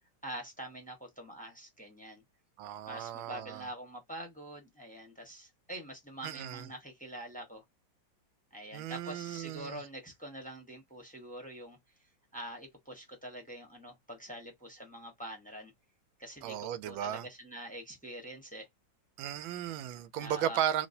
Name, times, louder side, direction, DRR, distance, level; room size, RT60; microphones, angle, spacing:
voice 1, 0.2-2.2 2.9-7.6 8.5-11.8 12.3-15.7 16.2-18.7 20.2-20.6, right 1 dB, 5° left, 0.8 m, -45 dB
voice 2, 2.6-3.7 6.2-6.7 8.7-9.8 16.4-17.3 19.2-20.9, right 10 dB, 85° right, 1.3 m, -35 dB
3.2 x 2.8 x 2.6 m
omnidirectional pair, 2.1 m